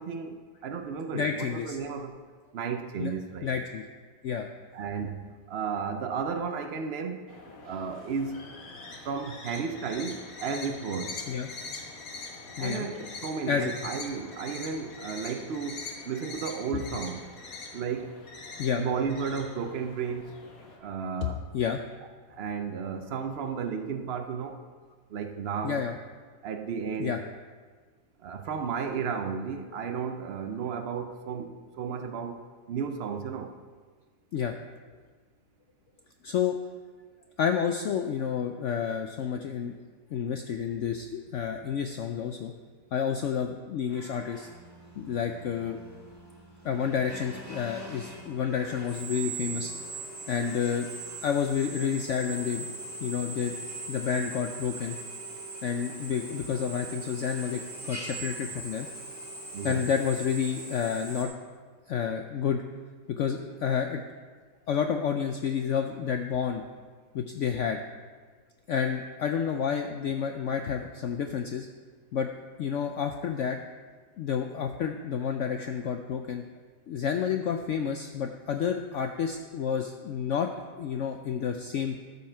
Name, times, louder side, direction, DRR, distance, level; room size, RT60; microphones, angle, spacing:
voice 1, 0.0-2.2 2.5-3.6 4.7-7.2 7.6-8.5 9.0-11.2 12.6-17.3 17.7-18.2 18.8-20.4 20.8-21.4 22.3-24.7 25.1-25.8 26.4-27.2 28.2-32.4 32.7-33.6 59.5-59.9, right 6 dB, 75° right, 0.5 m, -33 dB
voice 2, 1.1-1.8 3.0-3.1 3.4-3.8 4.2-4.5 11.3-11.5 12.6-12.9 13.5-13.7 18.6-18.8 21.5-21.8 25.6-25.9 27.0-27.2 34.3-34.5 36.2-36.6 37.4-39.8 40.1-42.5 42.9-44.5 45.0-45.8 46.6-49.7 50.3-50.9 51.2-52.7 53.0-53.5 53.9-54.9 55.6-58.9 59.6-61.3 61.9-62.6 63.2-64.0 64.7-66.6 67.1-67.8 68.7-71.7 72.1-72.3 72.6-73.6 74.2-76.4 76.9-82.0, left 7 dB, 75° left, 0.6 m, -30 dB
sound 1, 7.3-20.8, left 3 dB, 60° left, 1.6 m, -43 dB
Drill, 43.9-61.2, right 2 dB, 10° right, 1.6 m, -41 dB
13.5 x 5.6 x 4.5 m
omnidirectional pair, 1.8 m